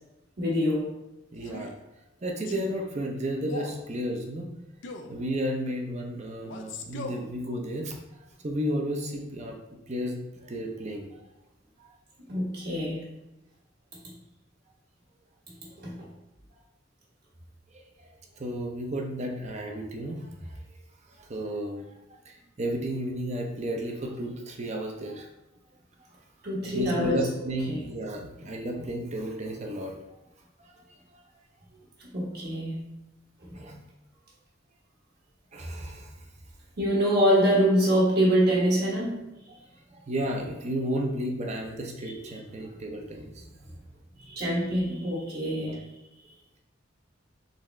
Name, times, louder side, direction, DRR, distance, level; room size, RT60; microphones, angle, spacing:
voice 1, 0.4-0.9 12.3-13.0 15.8-16.0 26.4-27.1 27.7-27.8 32.1-32.9 36.8-39.3 44.2-45.8, equal, 55° right, -5 dB, 1.6 m, -25 dB
voice 2, 1.3-1.7 2.2-4.5 5.1-7.9 8.4-11.1 11.8-11.9 17.7-17.8 18.4-20.6 21.2-21.9 22.3-25.3 26.6-29.9 30.7-30.8 33.5-33.8 35.5-36.1 39.9-43.5 45.6-45.8, equal, 35° right, 1 dB, 0.7 m, -33 dB
Male speech man speaking, 1.4-1.8 2.5-2.7 3.4-3.8 4.8-5.2 6.4-7.3, left 3 dB, 70° left, 0.5 m, -39 dB
4.1 x 3.6 x 3.2 m, 0.96 s
head